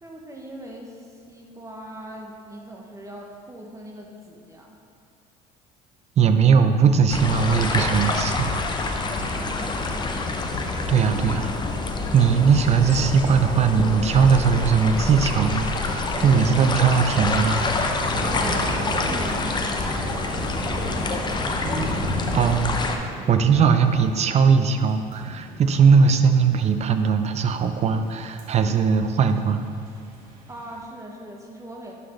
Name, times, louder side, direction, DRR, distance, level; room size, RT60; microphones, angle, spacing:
voice 1, 0.0-4.8 9.1-10.3 18.1-22.0 30.5-31.9, right 1 dB, 15° right, -1 dB, 0.8 m, -40 dB
voice 2, 6.2-8.5 8.8-9.0 10.9-11.5 12.1-17.6 22.3-22.8 23.3-29.6, right 6 dB, 40° right, 8 dB, 0.5 m, -19 dB
sound 1, 7.1-23.0, left 3 dB, 25° left, 0.6 m, -27 dB
sound 2, 13.4-30.8, right 1 dB, 55° right, 1.6 m, -35 dB
11.0 x 3.9 x 3.2 m, 2.4 s
supercardioid pair, 90°, 17 cm